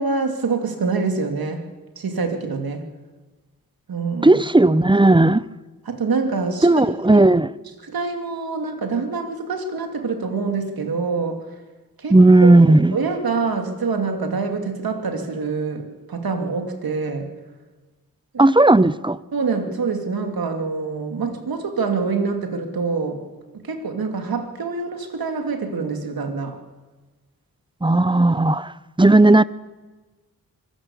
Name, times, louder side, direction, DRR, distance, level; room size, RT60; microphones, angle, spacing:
voice 1, 0.0-1.6 2.0-2.9 3.9-4.4 5.9-6.9 7.1-7.2 7.8-11.5 12.0-17.4 18.3-18.4 19.3-23.3 23.5-26.6, right 4 dB, 85° right, 2.5 m, -25 dB
voice 2, 4.2-5.4 6.6-7.5 12.1-13.0 18.4-19.2 27.8-28.7 29.0-29.4, right 2 dB, 15° right, 0.7 m, -14 dB
24.0 x 16.5 x 7.1 m
cardioid pair, 55°, 35 cm